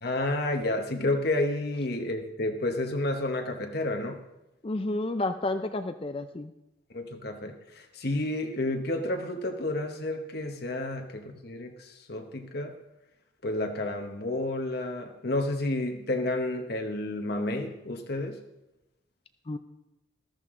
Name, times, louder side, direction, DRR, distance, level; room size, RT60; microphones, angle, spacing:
voice 1, 0.0-4.2 6.9-12.7 13.4-18.4, left 2 dB, 50° left, 4 dB, 1.0 m, -30 dB
voice 2, 4.6-6.5 19.5-19.6, left 2 dB, 25° left, 8 dB, 0.4 m, -30 dB
14.0 x 13.0 x 3.7 m, 0.95 s
head